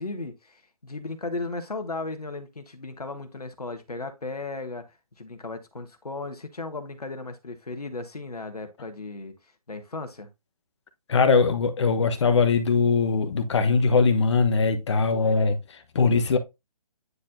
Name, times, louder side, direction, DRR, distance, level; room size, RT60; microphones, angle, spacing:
voice 1, 0.0-10.3, left 3 dB, 85° left, 1.2 m, -36 dB
voice 2, 11.1-16.4, left 4 dB, 50° left, 1.1 m, -21 dB
9.5 x 4.2 x 2.6 m
figure-of-eight pair, 145°, 19 cm